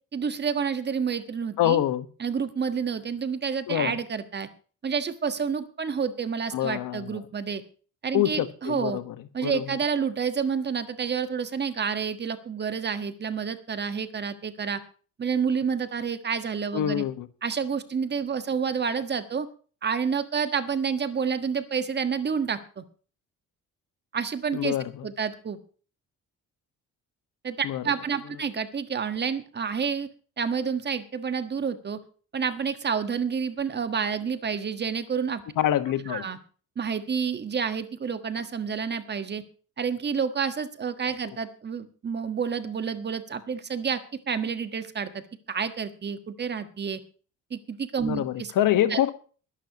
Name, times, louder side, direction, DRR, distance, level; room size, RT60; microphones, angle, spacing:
voice 1, 0.1-1.8 2.2-4.5 4.8-7.6 8.0-9.0 9.3-14.8 15.2-17.0 17.4-19.5 19.8-22.8 24.1-24.8 25.0-25.6 27.4-30.1 30.4-32.0 32.3-35.4 36.1-36.4 36.8-39.4 39.8-44.0 44.3-45.1 45.5-47.0 47.5-48.5 48.9-49.0, right 6 dB, 30° right, 10 dB, 1.5 m, -29 dB
voice 2, 1.6-2.1 3.7-4.0 6.5-7.3 8.1-9.2 9.4-9.7 16.7-17.3 24.5-25.0 27.6-27.8 35.6-36.3 41.3-41.4 48.1-49.1, left 12 dB, 80° left, 12 dB, 1.5 m, -26 dB
21.5 x 11.5 x 3.0 m, 0.40 s
cardioid pair, 155°, 32 cm